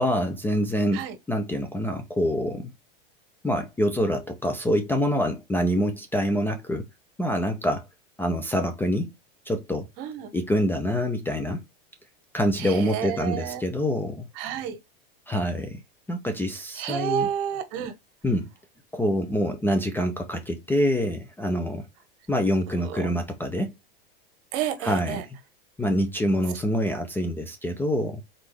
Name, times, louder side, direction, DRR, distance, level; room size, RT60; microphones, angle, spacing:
voice 1, 0.0-2.7 3.4-6.9 7.2-7.9 8.2-9.1 9.5-9.9 10.3-11.6 12.3-14.3 15.3-15.8 16.1-17.3 18.2-18.5 18.9-21.9 22.3-23.7 24.8-25.2 25.8-28.2, equal, 5° left, 0.5 m, -26 dB
voice 2, 10.0-10.3 12.6-13.6 14.4-14.8 16.8-17.9 22.7-23.1 24.5-25.2, right 9 dB, 50° right, 1.2 m, -30 dB
3.9 x 3.4 x 3.3 m
hypercardioid pair, 120°, 30 cm